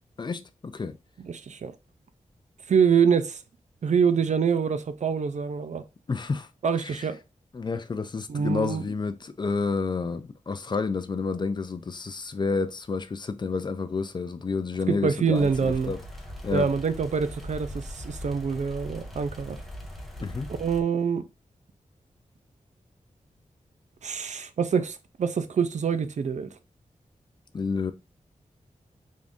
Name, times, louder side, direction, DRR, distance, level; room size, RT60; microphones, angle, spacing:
voice 1, 0.2-1.0 6.1-6.5 6.8-7.1 7.5-16.0 16.4-16.7 20.2-20.5 27.5-27.9, left 4 dB, 35° left, 0.4 m, -30 dB
voice 2, 1.2-1.7 2.7-3.4 3.8-5.8 6.6-7.2 8.3-8.8 14.9-15.9 16.5-19.6 20.6-21.3 24.0-26.5, right 6 dB, 60° right, 0.4 m, -25 dB
sound 1, 15.3-20.8, equal, ahead, 0.8 m, -40 dB
3.6 x 2.6 x 3.5 m
wide cardioid pair, 120°, 13 cm